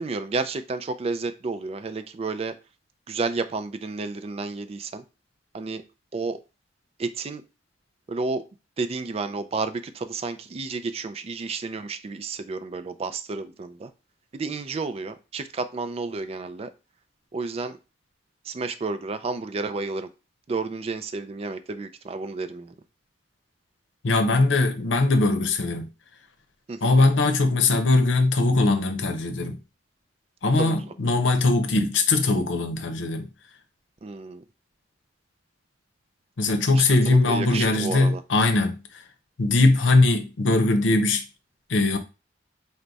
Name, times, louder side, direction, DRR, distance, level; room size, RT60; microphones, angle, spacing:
voice 1, 0.0-2.5 3.1-5.0 5.5-5.8 6.1-6.4 7.0-7.4 8.1-8.4 8.8-13.9 14.3-16.7 17.3-17.8 18.4-20.1 20.5-22.7 26.7-26.9 30.6-30.9 34.0-34.4 36.7-38.2, right 3 dB, 30° right, 0.3 m, -31 dB
voice 2, 24.0-25.9 26.8-29.6 30.4-33.3 36.4-38.8 39.4-41.2 41.7-42.0, left 2 dB, 85° left, 0.7 m, -21 dB
4.6 x 2.2 x 3.9 m
head